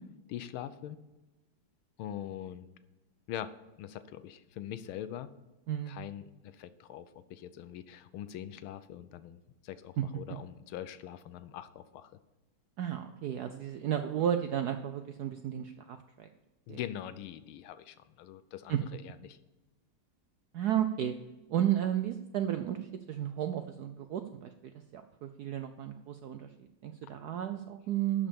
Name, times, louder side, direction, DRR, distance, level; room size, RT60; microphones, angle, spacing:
voice 1, 0.3-1.0 2.0-2.7 3.3-3.5 3.8-5.3 5.9-12.1 16.7-19.4, left 11 dB, 80° left, 13 dB, 1.5 m, -43 dB
voice 2, 12.8-16.3 16.7-16.8 18.7-18.8 20.5-21.2 21.5-26.5 26.8-28.3, right 10 dB, 75° right, 8 dB, 0.9 m, -33 dB
12.0 x 5.5 x 6.9 m, 1.1 s
omnidirectional pair, 2.3 m